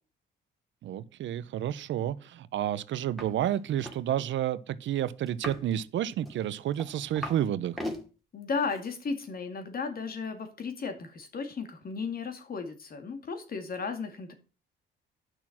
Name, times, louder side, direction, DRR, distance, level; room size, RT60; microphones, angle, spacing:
voice 1, 0.8-7.8, right 11 dB, 70° right, 0.7 m, -30 dB
sound 1, 3.2-3.3 3.6-4.0 5.3-5.7 6.3-7.4 7.7-8.0 8.7-8.9, left 1 dB, ahead, 2.3 m, -38 dB
voice 2, 8.3-14.3, left 5 dB, 50° left, 2.2 m, -35 dB
10.0 x 6.1 x 5.9 m
cardioid pair, 90°, 20 cm